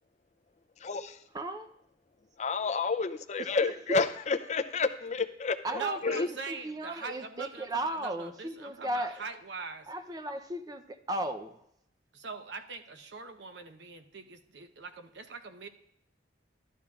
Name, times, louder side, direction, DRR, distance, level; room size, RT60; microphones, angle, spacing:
voice 1, 0.8-1.2 2.4-6.3, left 4 dB, 40° left, 9 dB, 0.5 m, -30 dB
voice 2, 1.3-1.7 3.4-4.0 5.6-9.1 9.9-11.6, right 1 dB, 20° right, 8 dB, 0.6 m, -36 dB
voice 3, 5.7-9.9 12.1-15.7, right 4 dB, 75° right, 7 dB, 0.8 m, -42 dB
12.5 x 11.5 x 2.4 m, 0.76 s
head